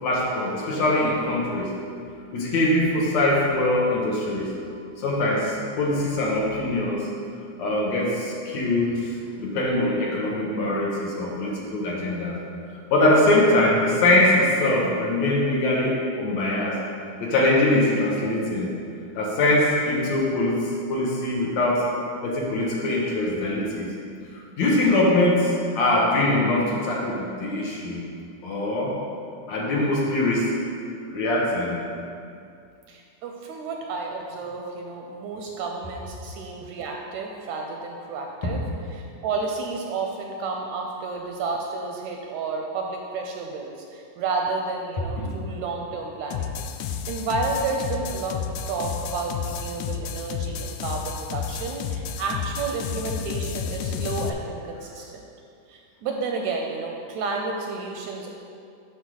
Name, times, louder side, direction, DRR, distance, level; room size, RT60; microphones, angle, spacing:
voice 1, 0.0-1.7 2.3-4.5 5.0-7.1 7.6-9.1 9.4-12.4 12.9-16.8 17.2-18.7 19.2-21.8 22.2-23.9 24.6-28.0 28.4-28.9 29.5-30.6 31.1-31.8, left 1 dB, 65° left, -4 dB, 2.3 m, -22 dB
voice 2, 32.9-38.6 38.9-46.6 47.1-55.2 55.7-58.3, right 4 dB, 80° right, 1 dB, 1.8 m, -31 dB
sound 1, 46.3-54.3, left 7 dB, 90° left, 1.5 m, -31 dB
9.5 x 3.7 x 6.3 m, 2.5 s
omnidirectional pair, 3.6 m